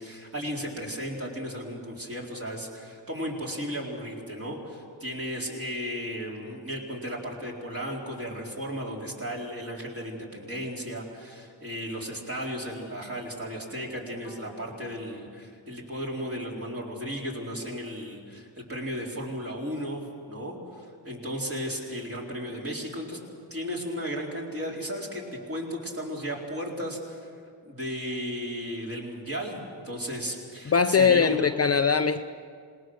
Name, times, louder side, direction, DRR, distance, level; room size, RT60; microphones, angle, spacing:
voice 1, 0.0-23.2 23.5-27.3 27.6-31.5, equal, 30° right, -2 dB, 4.1 m, -35 dB
Bowed string instrument, 14.2-17.3, equal, 80° right, 4.9 m, -53 dB
voice 2, 30.7-32.2, left 6 dB, 35° left, 8 dB, 0.5 m, -21 dB
27.0 x 20.0 x 6.4 m, 2.2 s
wide cardioid pair, 140°, 43 cm